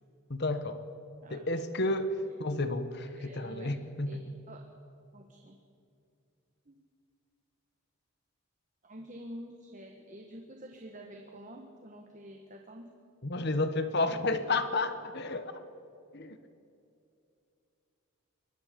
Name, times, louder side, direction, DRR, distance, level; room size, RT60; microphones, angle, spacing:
voice 1, 0.3-0.9 1.3-4.3 13.2-15.6 16.1-16.4, left 2 dB, 50° left, 10 dB, 1.2 m, -31 dB
voice 2, 3.1-3.7 4.1-4.2 4.5-4.7 5.1-5.6 6.6-6.8 8.8-12.9, equal, 35° right, 2 dB, 1.5 m, -48 dB
24.0 x 20.5 x 5.3 m, 2.6 s
head